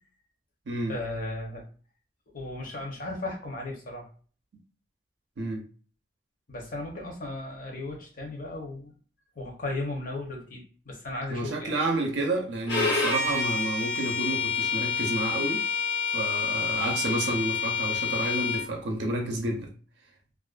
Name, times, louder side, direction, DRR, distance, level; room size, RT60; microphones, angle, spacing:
voice 1, 0.9-1.7 2.3-4.1 6.5-8.9 9.4-11.8 13.2-13.5, left 2 dB, 50° left, 0.8 m, -36 dB
voice 2, 11.3-15.6 16.1-19.7, right 2 dB, 70° right, 0.5 m, -30 dB
Bowed string instrument, 12.7-18.7, left 4 dB, 75° left, 0.9 m, -28 dB
2.4 x 2.2 x 2.4 m
head